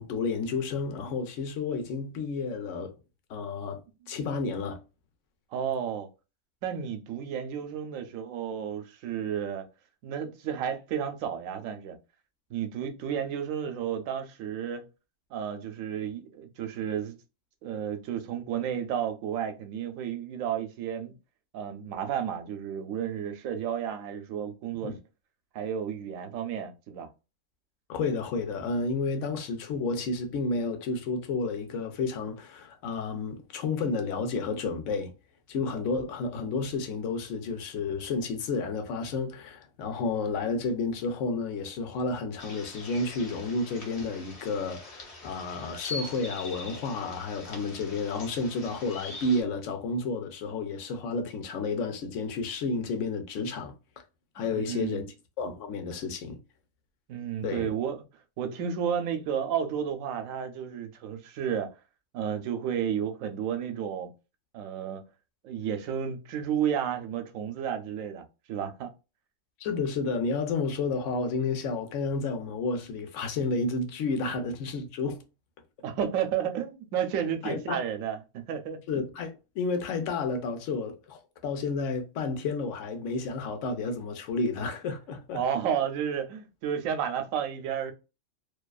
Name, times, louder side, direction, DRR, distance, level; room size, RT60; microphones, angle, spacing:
voice 1, 0.0-3.0 3.3-3.8 4.1-4.8 24.8-25.0 27.9-35.1 35.5-53.8 54.3-55.1 55.4-56.4 57.4-57.7 69.6-75.2 77.4-77.8 78.9-85.4, left 3 dB, 75° left, 0.9 m, -31 dB
voice 2, 5.5-6.1 6.6-9.7 10.0-12.0 12.5-14.9 15.3-17.2 17.6-21.1 21.5-25.0 25.5-27.1 54.4-55.0 57.1-58.0 58.4-61.7 62.1-64.1 64.5-65.0 65.4-68.9 75.8-78.8 85.3-87.9, right 8 dB, 85° right, 1.0 m, -32 dB
sound 1, 42.4-49.4, left 2 dB, 35° left, 0.6 m, -43 dB
2.6 x 2.3 x 2.2 m
omnidirectional pair, 1.4 m